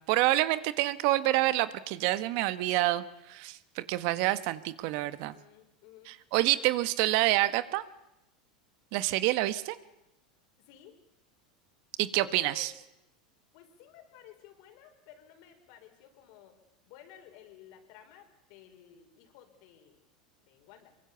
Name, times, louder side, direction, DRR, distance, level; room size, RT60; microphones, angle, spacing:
voice 1, 0.1-5.4 6.0-7.8 8.9-9.8 12.0-12.7, right 17 dB, 60° right, 14 dB, 1.3 m, -27 dB
voice 2, 5.2-6.1 6.6-6.7 10.6-11.0 12.1-12.7 13.5-16.6 16.9-20.0 20.4-20.9, left 9 dB, 60° left, 5 dB, 5.1 m, -54 dB
24.0 x 23.0 x 7.0 m, 0.89 s
hypercardioid pair, 100°, 4 cm